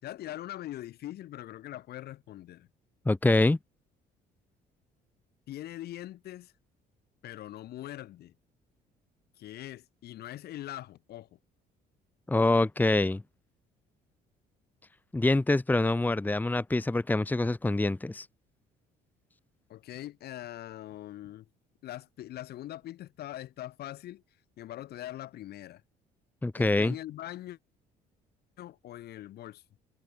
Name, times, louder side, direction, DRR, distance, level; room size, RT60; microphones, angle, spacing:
voice 1, 0.0-2.7 5.5-6.5 7.2-8.3 9.4-11.4 19.7-21.5 21.8-24.2 24.6-25.8 26.6-27.6 28.6-29.6, left 13 dB, 70° left, 6.2 m, -42 dB
voice 2, 3.0-3.6 12.3-13.2 15.1-18.3 26.4-26.9, left 2 dB, 10° left, 1.4 m, -25 dB
cardioid pair, 110°, 17 cm